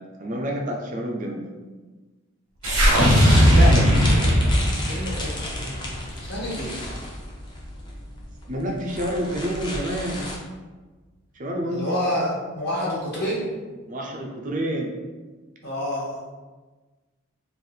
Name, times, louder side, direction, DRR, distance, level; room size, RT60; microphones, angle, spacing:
voice 1, 0.0-1.4 3.5-4.0 8.5-10.3 11.3-12.1 13.9-15.0, equal, 35° right, 1 dB, 0.5 m, -28 dB
sound 1, 2.6-10.4, left 1 dB, 20° left, 0.6 m, -33 dB
sound 2, 2.6-6.9, equal, 85° right, 1.0 m, -18 dB
voice 2, 4.8-6.8 11.7-13.5 15.6-16.2, equal, 50° left, -6 dB, 1.4 m, -29 dB
3.3 x 2.5 x 4.4 m, 1.3 s
head